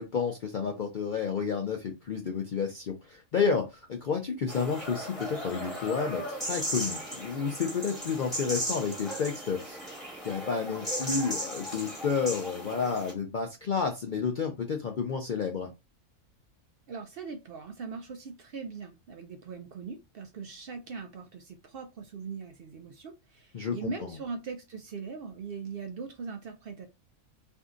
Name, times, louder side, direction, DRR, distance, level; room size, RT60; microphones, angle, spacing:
voice 1, 0.0-9.8 10.2-15.7 23.5-24.1, left 5 dB, 65° left, 0.4 m, -31 dB
sound 1, 4.5-13.1, equal, ahead, 1.4 m, -36 dB
voice 2, 16.9-26.9, right 5 dB, 65° right, 0.5 m, -40 dB
2.6 x 2.6 x 3.5 m
omnidirectional pair, 1.4 m